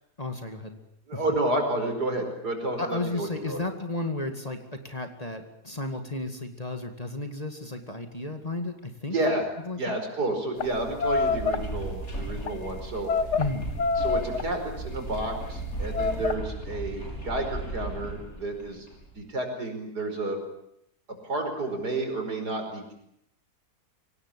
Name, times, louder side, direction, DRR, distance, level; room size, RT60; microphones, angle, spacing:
voice 1, 0.2-0.8 1.1-1.2 2.8-9.2 9.7-10.0 13.4-13.7, left 2 dB, 25° left, 6 dB, 2.3 m, -33 dB
voice 2, 1.1-3.6 9.1-9.5 9.8-13.1 14.0-18.9 19.1-20.4 21.2-22.9, right 2 dB, 80° right, 4 dB, 5.6 m, -30 dB
sound 1, 10.6-10.7 11.0-11.6 12.3-12.5 13.1-13.5 13.8-14.5 15.2-15.4 15.9-16.3, left 4 dB, 90° left, 2.0 m, -26 dB
sound 2, 10.6-19.1, right 2 dB, 60° left, 7.0 m, -36 dB
24.5 x 18.5 x 9.9 m, 0.76 s
omnidirectional pair, 1.7 m